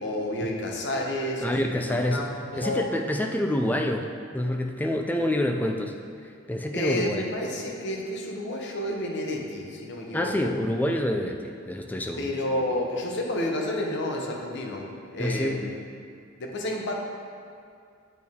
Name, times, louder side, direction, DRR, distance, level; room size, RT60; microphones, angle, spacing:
voice 1, 0.0-2.9 6.7-10.5 12.2-14.8 15.1-15.7 16.4-16.9, left 1 dB, 55° left, 0 dB, 0.8 m, -30 dB
voice 2, 1.4-2.3 2.6-4.1 4.3-5.9 6.5-7.2 10.1-12.3 15.2-15.6, left 1 dB, 10° left, 3 dB, 0.3 m, -27 dB
8.2 x 4.3 x 3.6 m, 2.4 s
head